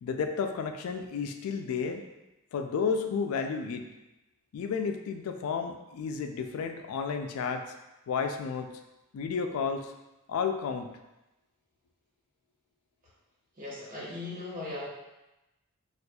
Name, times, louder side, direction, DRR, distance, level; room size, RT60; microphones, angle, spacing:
voice 1, 0.0-2.0 2.5-3.9 4.5-7.7 8.1-8.7 9.1-9.9 10.3-10.9, left 5 dB, 80° left, 6 dB, 0.3 m, -32 dB
voice 2, 13.6-14.9, left 2 dB, 40° right, -7 dB, 0.9 m, -38 dB
4.2 x 2.4 x 2.3 m, 0.99 s
head